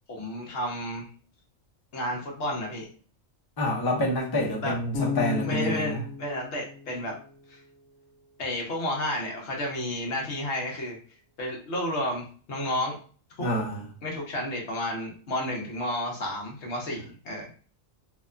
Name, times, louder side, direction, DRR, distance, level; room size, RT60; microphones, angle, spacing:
voice 1, 0.1-1.1 1.9-2.9 4.6-4.8 5.4-7.2 7.5-7.6 8.4-11.0 11.4-13.0 13.4-13.5 14.0-17.5, left 1 dB, 65° left, 1.1 m, -31 dB
voice 2, 3.6-6.0 13.4-13.8, left 1 dB, 40° left, 0.3 m, -27 dB
Bass guitar, 4.9-8.0, left 6 dB, 85° left, 1.0 m, -35 dB
2.8 x 2.2 x 2.4 m
omnidirectional pair, 1.3 m